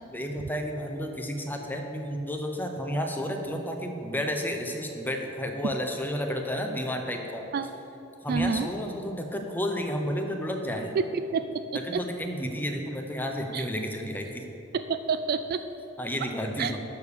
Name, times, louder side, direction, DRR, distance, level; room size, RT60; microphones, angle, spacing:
voice 1, 0.1-7.4 8.2-11.0 11.7-14.4 16.0-16.8, equal, 10° left, 3 dB, 0.8 m, -31 dB
voice 2, 8.3-8.7 11.0-11.5 11.9-12.0 13.5-13.6 14.7-15.7 16.6-16.7, right 5 dB, 45° right, 10 dB, 0.3 m, -28 dB
11.5 x 4.9 x 6.9 m, 3.0 s
head